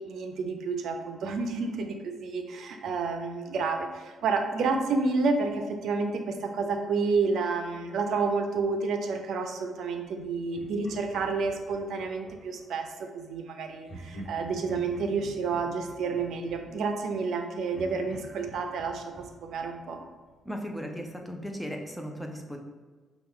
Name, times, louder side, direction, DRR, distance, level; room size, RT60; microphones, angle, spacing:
voice 1, 0.0-20.0, right 4 dB, 70° right, 5 dB, 0.5 m, -30 dB
Laughter, 10.5-12.7 13.9-17.4 17.7-20.5, right 1 dB, 45° left, 1.3 m, -47 dB
voice 2, 20.5-22.6, equal, ahead, 2 dB, 0.6 m, -36 dB
5.6 x 2.3 x 3.6 m, 1.4 s
cardioid pair, 90°, 0 cm